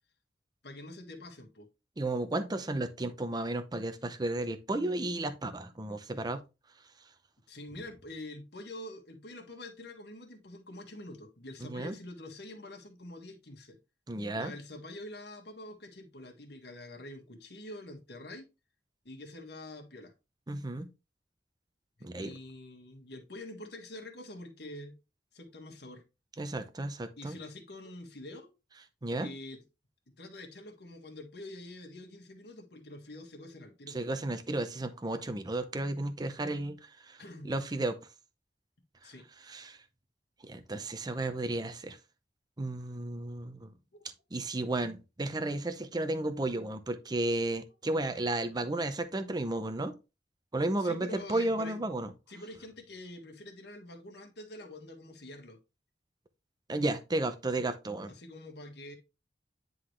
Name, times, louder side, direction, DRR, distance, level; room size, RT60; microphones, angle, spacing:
voice 1, 0.6-1.7 7.5-13.8 14.3-18.5 19.1-20.1 22.0-24.9 25.3-26.0 27.2-28.5 29.2-29.6 30.2-34.0 37.2-37.5 39.0-39.2 43.9-44.1 50.8-51.8 52.3-55.6 58.1-59.0, left 1 dB, 65° left, 1.8 m, -46 dB
voice 2, 2.0-6.4 11.7-11.9 14.1-14.5 20.5-20.9 22.0-22.3 26.4-27.4 29.0-29.3 33.9-38.0 39.0-39.1 39.4-39.8 40.4-42.0 42.6-43.7 44.3-49.9 50.5-52.1 56.7-58.1, right 2 dB, 25° right, 0.6 m, -33 dB
9.8 x 3.9 x 3.2 m
head